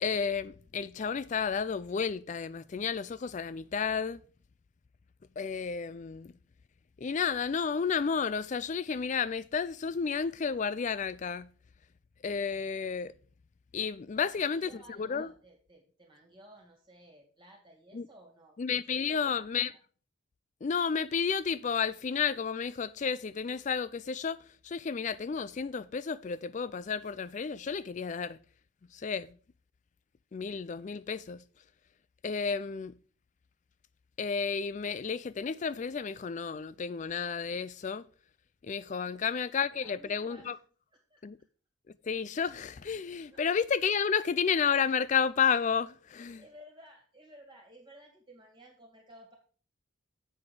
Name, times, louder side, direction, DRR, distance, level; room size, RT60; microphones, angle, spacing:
voice 1, 0.0-4.2 5.4-6.3 7.0-11.5 12.2-13.1 13.7-15.3 17.9-18.1 18.6-19.7 20.6-24.4 24.6-28.4 28.9-29.3 30.3-31.4 32.2-32.9 34.2-38.0 38.6-40.6 41.2-41.4 42.0-46.4, left 6 dB, 35° left, 0.3 m, -31 dB
voice 2, 14.1-18.6 19.0-19.4 19.7-19.8 39.1-39.3 39.8-40.6 40.9-41.2 43.3-43.4 46.4-49.4, right 1 dB, 20° right, 2.0 m, -55 dB
7.8 x 6.1 x 4.8 m
head